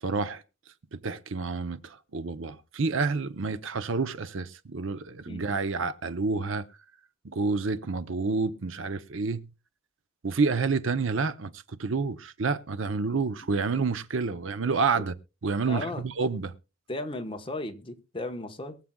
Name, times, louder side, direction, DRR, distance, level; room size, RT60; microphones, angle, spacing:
voice 1, 0.0-0.4 0.9-6.7 7.2-9.5 10.2-15.1 15.4-16.5, right 4 dB, 65° right, 0.7 m, -29 dB
voice 2, 15.7-16.0 16.9-18.8, left 2 dB, 25° left, 1.1 m, -35 dB
22.5 x 7.5 x 2.3 m
head